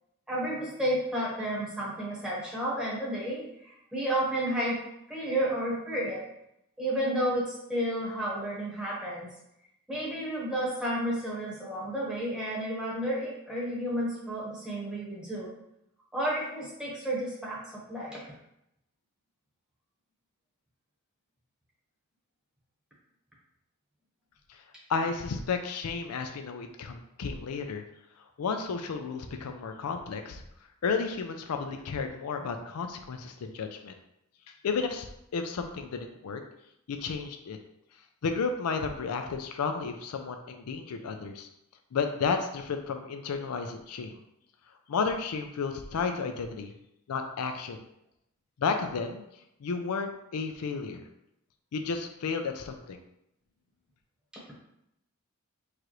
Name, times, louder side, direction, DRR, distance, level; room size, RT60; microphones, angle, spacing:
voice 1, 0.3-4.8 5.1-6.2 6.8-9.3 9.9-15.5 16.1-18.2, right 1 dB, 5° right, -6 dB, 1.1 m, -31 dB
voice 2, 24.9-27.8 28.2-30.4 30.8-34.0 34.6-36.4 36.9-37.6 38.2-41.5 41.9-44.2 44.9-46.7 47.1-47.8 48.6-49.2 49.6-51.0 51.7-53.0, left 5 dB, 85° left, 5 dB, 0.4 m, -32 dB
4.7 x 2.5 x 3.0 m, 0.81 s
head